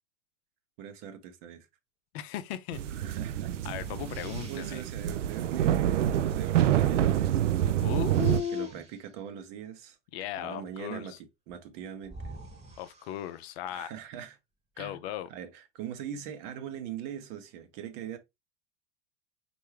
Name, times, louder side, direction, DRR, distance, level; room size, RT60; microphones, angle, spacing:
voice 1, 0.8-1.7 2.9-3.6 4.4-7.4 8.4-10.0 10.4-11.1 11.5-12.4 13.7-14.4 14.8-15.0 15.3-18.2, right 9 dB, 55° right, 1.0 m, -41 dB
voice 2, 2.1-2.8 3.6-4.8 7.8-8.7 10.1-11.2 12.8-13.9 14.8-15.3, left 11 dB, 55° left, 0.6 m, -36 dB
sound 1, 2.7-8.4, right 11 dB, 75° right, 0.5 m, -27 dB
sound 2, 3.7-5.0 7.6-9.2 11.5-11.6 12.0-13.6, right 2 dB, 15° right, 1.2 m, -47 dB
5.4 x 2.7 x 3.1 m
figure-of-eight pair, 80°, 37 cm